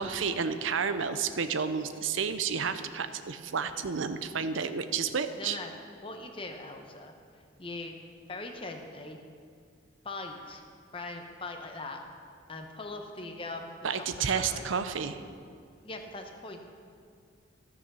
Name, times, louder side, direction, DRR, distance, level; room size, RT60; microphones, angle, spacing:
voice 1, 0.0-5.6 13.8-15.2, right 6 dB, 85° right, 11 dB, 0.6 m, -31 dB
voice 2, 5.4-5.7 6.0-7.1 7.6-8.0 8.3-9.2 10.0-10.6 10.9-12.0 12.5-14.7 15.8-16.7, left 2 dB, 30° left, 4 dB, 0.9 m, -41 dB
14.0 x 7.1 x 6.2 m, 2.2 s
head